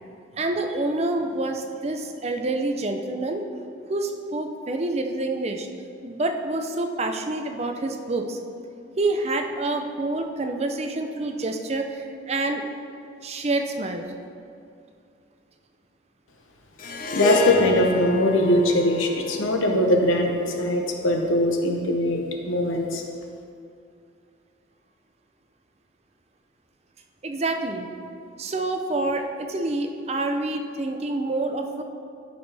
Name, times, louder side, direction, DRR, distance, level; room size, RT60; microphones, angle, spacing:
voice 1, 0.4-3.4 3.9-5.7 6.0-8.4 9.0-12.7 13.2-14.0 27.2-27.9 28.4-31.8, right 2 dB, 30° right, 5 dB, 0.5 m, -27 dB
Harp, 16.8-21.2, left 3 dB, 45° left, 0.7 m, -31 dB
voice 2, 17.1-23.0, left 1 dB, 85° left, 3 dB, 0.9 m, -21 dB
12.0 x 5.2 x 3.4 m, 2.4 s
head